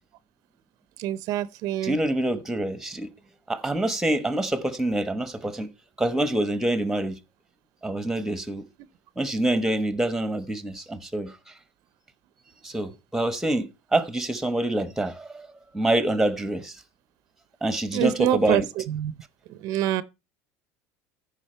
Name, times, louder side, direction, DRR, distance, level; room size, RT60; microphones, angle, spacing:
voice 1, 1.0-2.0 17.9-18.6 18.9-19.1 19.6-20.0, right 12 dB, 55° right, 0.6 m, -25 dB
voice 2, 1.8-3.1 3.5-5.7 6.0-7.2 7.8-8.6 9.2-11.3 12.6-15.5 15.7-16.8 17.6-18.7, right 1 dB, 5° right, 1.2 m, -26 dB
14.5 x 5.1 x 4.4 m
cardioid pair, 140°, 8 cm